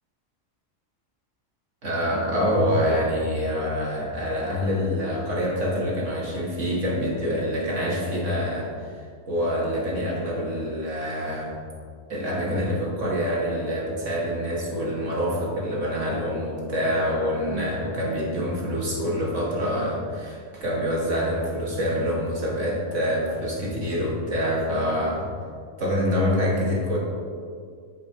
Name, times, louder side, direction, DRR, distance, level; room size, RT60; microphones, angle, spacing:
voice 1, 1.8-11.6 12.1-25.3 25.8-27.0, equal, 70° right, -4 dB, 2.1 m, -26 dB
8.8 x 7.3 x 2.8 m, 2.1 s
omnidirectional pair, 1.3 m